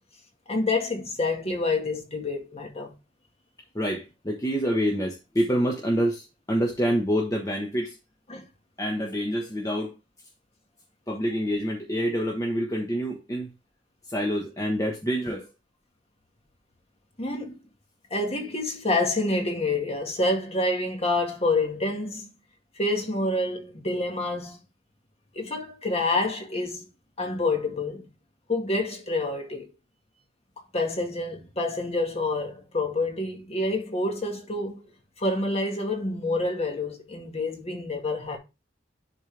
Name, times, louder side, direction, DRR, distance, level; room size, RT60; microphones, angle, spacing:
voice 1, 0.5-2.9 8.3-8.5 17.2-17.6 18.1-22.3 22.8-24.6 25.3-26.9 27.2-28.1 28.5-29.7 30.7-34.9 35.2-38.4, left 2 dB, 35° left, 1.9 m, -27 dB
voice 2, 3.7-8.0 8.8-9.9 11.1-13.5 14.1-15.5, equal, 20° left, 1.3 m, -27 dB
10.5 x 4.4 x 3.4 m
head